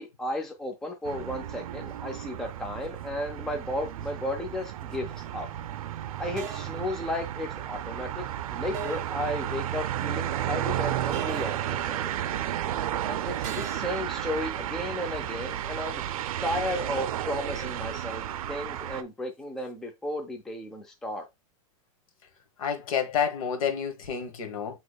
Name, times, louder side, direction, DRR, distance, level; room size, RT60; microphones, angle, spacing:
voice 1, 0.0-5.5 6.2-8.2 8.5-12.1 13.1-16.0 16.4-21.2, left 1 dB, 5° left, 0.4 m, -34 dB
sound 1, 1.0-19.0, right 11 dB, 90° right, 0.5 m, -33 dB
sound 2, 5.1-5.4 6.4-6.8 8.7-9.2 11.1-11.7 13.4-14.0, right 6 dB, 35° right, 0.9 m, -39 dB
voice 2, 22.6-24.8, left 7 dB, 75° left, 1.1 m, -29 dB
8.1 x 2.9 x 2.2 m
supercardioid pair, 165°, 18 cm